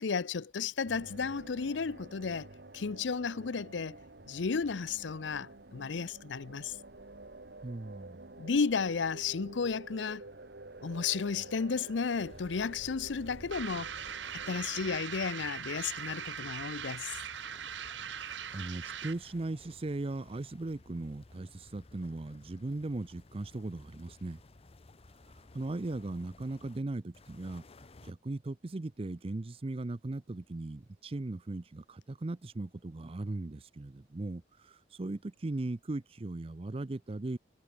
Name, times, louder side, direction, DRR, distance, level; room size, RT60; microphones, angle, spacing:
voice 1, 0.0-2.5 2.7-4.0 4.3-6.8 8.4-10.2 10.8-13.9 14.3-17.2, left 5 dB, 90° left, 0.6 m, -33 dB
sound 1, 0.8-15.0, right 2 dB, 65° right, 1.9 m, -50 dB
voice 2, 7.6-8.2 18.5-24.4 25.3-37.4, right 2 dB, 30° right, 0.5 m, -38 dB
sound 2, 12.1-26.8 27.1-28.1, left 2 dB, 35° left, 0.7 m, -57 dB
sound 3, 13.5-19.3, right 8 dB, 85° right, 1.1 m, -41 dB
head